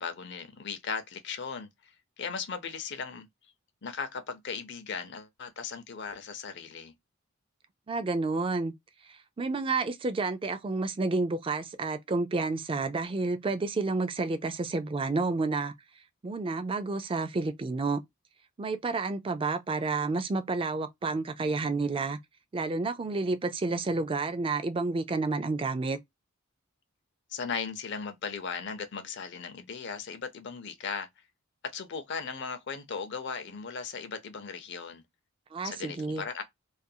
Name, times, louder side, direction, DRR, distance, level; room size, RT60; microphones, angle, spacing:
voice 1, 0.0-1.7 2.2-3.3 3.8-6.9 27.3-31.1 31.7-35.0 35.6-36.4, left 5 dB, 55° left, 0.6 m, -37 dB
voice 2, 7.9-8.7 9.1-15.7 16.2-18.0 18.6-22.2 22.5-26.0 35.5-36.2, right 3 dB, 25° right, 0.4 m, -30 dB
2.5 x 2.3 x 2.6 m
head